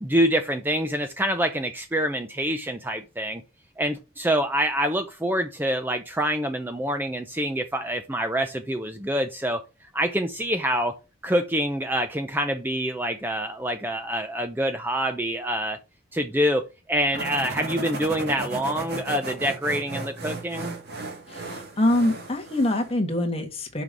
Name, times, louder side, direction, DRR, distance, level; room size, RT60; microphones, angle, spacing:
voice 1, 0.0-3.4 3.8-9.6 9.9-10.9 11.2-15.8 16.1-20.7, equal, 10° right, 0.6 m, -26 dB
sound 1, 17.1-22.9, right 2 dB, 55° right, 2.0 m, -34 dB
voice 2, 21.3-23.8, left 1 dB, 30° left, 1.5 m, -24 dB
6.1 x 5.2 x 6.1 m
head